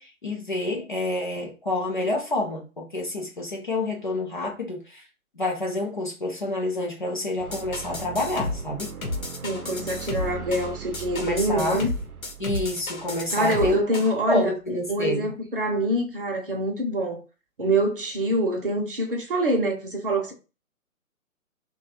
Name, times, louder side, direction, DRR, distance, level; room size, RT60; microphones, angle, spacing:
voice 1, 0.0-5.1 5.4-8.9 11.2-11.8 12.4-13.8 14.3-15.3, left 2 dB, 35° left, 0.5 m, -28 dB
sound 1, 7.4-14.0, right 8 dB, 80° right, 0.6 m, -40 dB
sound 2, 7.5-14.1, left 2 dB, 70° left, 1.0 m, -33 dB
voice 2, 9.4-11.9 13.3-17.2 17.6-20.3, right 1 dB, 40° right, 0.7 m, -25 dB
2.9 x 2.3 x 2.9 m
figure-of-eight pair, 135°, 43 cm